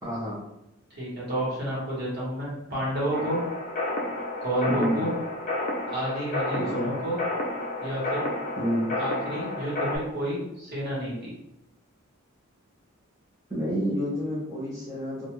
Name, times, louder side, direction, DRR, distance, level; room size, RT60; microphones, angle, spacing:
voice 1, 0.0-0.4 4.7-5.1 6.6-6.9 8.6-8.9 13.5-15.3, equal, 15° right, -10 dB, 0.6 m, -29 dB
voice 2, 1.0-3.4 4.4-5.1 5.9-7.2 7.8-8.3 9.0-11.3, right 1 dB, 45° right, -7 dB, 1.1 m, -30 dB
sound 1, 3.1-10.0, left 2 dB, 35° left, 0.4 m, -31 dB
2.3 x 2.3 x 2.9 m, 0.85 s
head